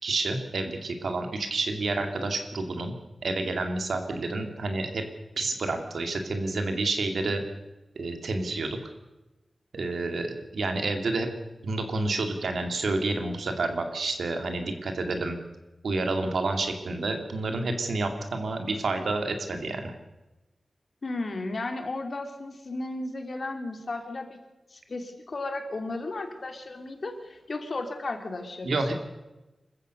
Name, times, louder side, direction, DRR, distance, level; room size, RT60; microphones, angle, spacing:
voice 1, 0.0-2.9 3.2-5.0 5.4-7.4 7.9-8.8 9.7-11.3 11.6-15.4 15.8-19.9 28.6-28.9, right 3 dB, 80° right, 5 dB, 3.0 m, -29 dB
voice 2, 21.0-24.4 24.7-28.9, left 2 dB, 50° left, 5 dB, 3.0 m, -34 dB
26.0 x 15.0 x 6.7 m, 1.0 s
wide cardioid pair, 115°, 0 cm